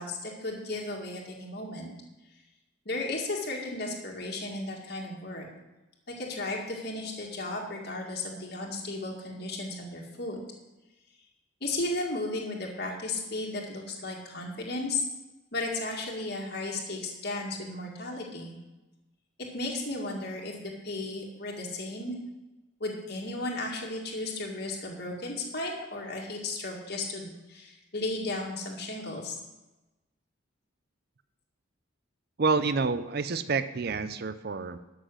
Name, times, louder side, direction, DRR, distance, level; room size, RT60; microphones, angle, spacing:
voice 1, 0.0-1.9 2.9-5.5 6.1-10.4 11.6-15.0 15.5-18.5 19.4-22.2 22.8-29.4, left 2 dB, 50° left, -2 dB, 1.9 m, -34 dB
voice 2, 32.4-34.8, right 4 dB, 50° right, 12 dB, 0.5 m, -28 dB
12.5 x 6.5 x 6.3 m, 1.1 s
head